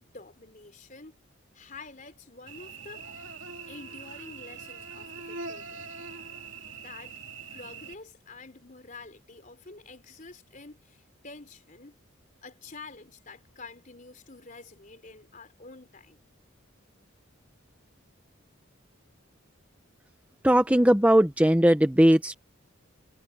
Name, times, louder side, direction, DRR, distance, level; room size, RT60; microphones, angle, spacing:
voice 1, 0.1-1.2 1.5-3.1 3.7-6.2 6.8-7.2 7.5-12.0 12.4-16.2, left 3 dB, 40° left, 3.9 m, -48 dB
Cricket / Buzz, 2.5-7.9, right 4 dB, 65° right, 2.9 m, -42 dB
voice 2, 20.4-22.3, equal, 5° right, 1.0 m, -19 dB
head